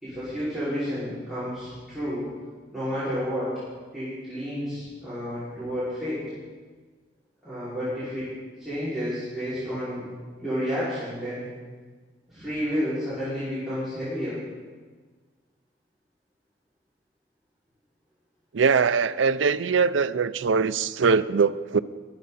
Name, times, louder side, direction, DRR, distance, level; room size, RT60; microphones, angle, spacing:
voice 1, 0.0-2.3 2.7-3.5 3.9-6.2 7.4-8.3 8.6-10.0 10.4-11.5 12.3-14.4, equal, ahead, 5.7 m, -30 dB
voice 2, 18.5-21.8, right 5 dB, 90° right, 0.5 m, -22 dB
23.0 x 10.5 x 4.2 m
head